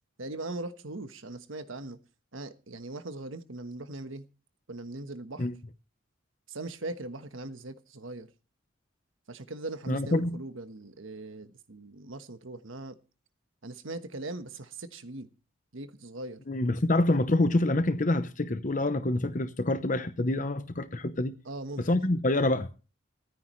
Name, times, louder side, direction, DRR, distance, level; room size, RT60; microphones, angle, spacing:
voice 1, 0.2-2.0 2.3-4.3 4.7-5.5 6.5-8.3 9.3-13.0 13.6-15.3 15.7-16.4 21.4-21.9, right 2 dB, 80° right, 1.3 m, -40 dB
voice 2, 9.9-10.4 16.5-21.3 21.8-22.7, left 2 dB, 40° left, 0.8 m, -26 dB
25.0 x 9.7 x 3.2 m
head